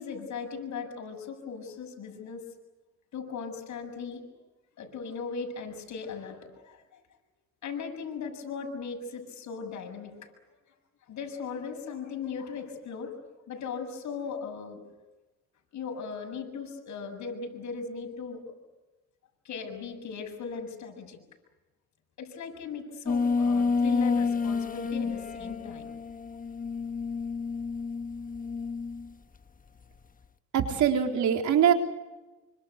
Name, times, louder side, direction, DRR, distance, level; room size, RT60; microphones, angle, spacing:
voice 1, 0.0-2.4 3.1-4.2 4.8-6.4 6.6-7.0 7.6-10.3 11.1-13.1 13.5-14.8 15.7-18.4 19.4-21.2 22.2-25.9, left 5 dB, 70° left, 3 dB, 7.2 m, -38 dB
sound 1, 23.1-29.1, left 4 dB, 25° left, 1.3 m, -29 dB
voice 2, 30.5-31.7, right 8 dB, 75° right, 4 dB, 3.8 m, -23 dB
26.5 x 25.5 x 8.2 m, 1.1 s
cardioid pair, 90°, 30 cm